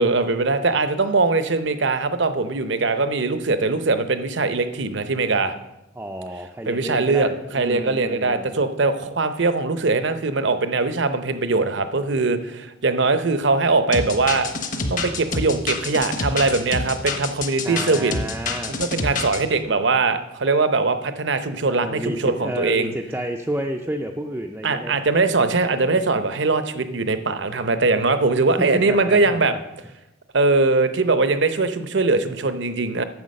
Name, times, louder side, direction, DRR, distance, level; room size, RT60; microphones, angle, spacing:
voice 1, 0.0-5.5 6.7-14.5 14.9-18.1 18.7-22.9 24.6-29.5 30.3-33.0, right 3 dB, 60° right, 10 dB, 0.7 m, -21 dB
voice 2, 6.0-8.5 17.6-18.8 21.5-25.0 28.7-29.6, right 1 dB, 10° right, 2 dB, 0.4 m, -31 dB
sound 1, 13.9-19.4, left 3 dB, 40° left, 1.1 m, -27 dB
9.5 x 7.3 x 6.4 m, 0.94 s
head